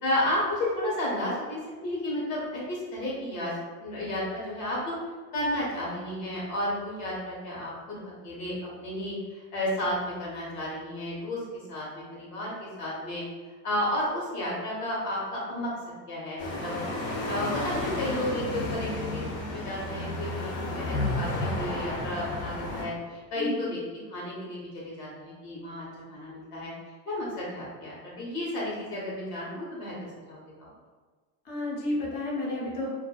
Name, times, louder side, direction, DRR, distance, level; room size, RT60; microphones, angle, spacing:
voice 1, 0.0-3.5 3.8-4.9 5.3-11.4 11.7-12.5 12.8-13.2 13.6-15.7 16.1-16.8 17.3-21.3 21.5-23.8 24.1-26.7 27.1-29.9 30.3-30.4, left 1 dB, 80° left, -5 dB, 1.2 m, -32 dB
sound 1, 16.4-22.8, left 2 dB, 55° left, 0.7 m, -32 dB
voice 2, 23.4-23.7 31.5-32.9, left 1 dB, 20° left, -4 dB, 0.5 m, -31 dB
2.5 x 2.2 x 2.3 m, 1.4 s
supercardioid pair, 110°, 47 cm